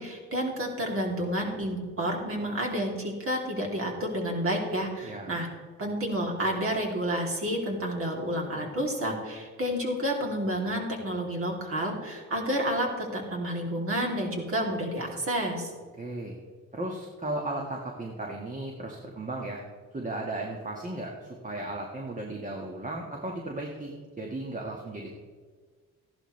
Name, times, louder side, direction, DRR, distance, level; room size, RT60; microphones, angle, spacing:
voice 1, 0.0-5.5 5.8-15.7, equal, 45° right, 0 dB, 3.0 m, -30 dB
voice 2, 16.0-16.3 16.7-19.6 19.9-25.1, right 2 dB, 25° right, 0 dB, 1.6 m, -35 dB
14.5 x 11.5 x 3.3 m, 1.5 s
cardioid pair, 90°, 30 cm